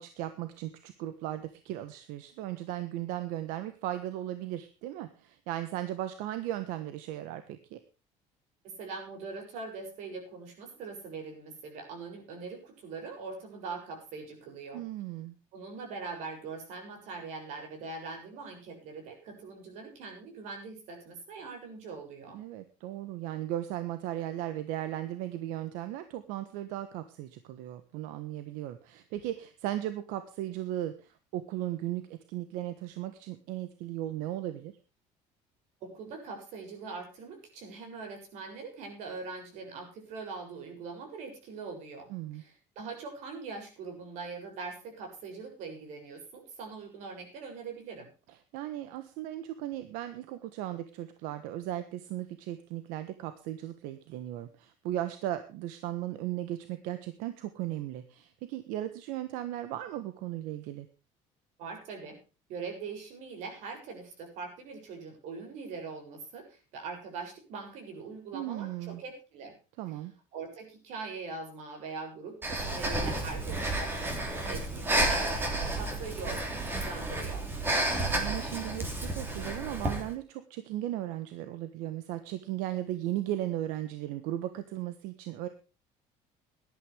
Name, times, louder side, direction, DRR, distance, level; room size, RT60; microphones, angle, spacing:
voice 1, 0.0-7.8 14.7-15.3 22.3-34.7 42.1-42.4 48.5-60.9 68.3-69.0 69.8-70.1 77.7-85.5, right 13 dB, 90° right, 10 dB, 1.4 m, -36 dB
voice 2, 8.6-14.8 15.5-22.4 35.8-48.1 61.6-62.2 62.5-69.6 70.3-75.5 75.8-77.5, right 4 dB, 65° right, 4 dB, 7.4 m, -42 dB
Breathing, 72.4-80.1, right 2 dB, 15° right, 3.2 m, -31 dB
18.0 x 12.0 x 3.5 m, 0.34 s
cardioid pair, 175°, 13 cm